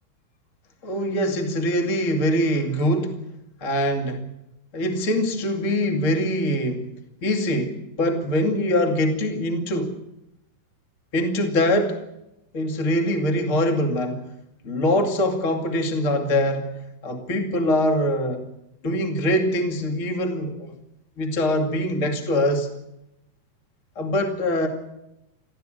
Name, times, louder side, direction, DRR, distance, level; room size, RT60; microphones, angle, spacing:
voice 1, 0.8-3.1 3.6-4.2 4.7-6.9 7.2-9.9 11.1-12.0 12.5-14.2 14.6-16.7 17.0-18.4 18.8-20.7 21.2-22.7 23.9-24.7, left 1 dB, 50° left, 4 dB, 0.8 m, -23 dB
23.0 x 15.5 x 9.0 m, 0.87 s
omnidirectional pair, 5.8 m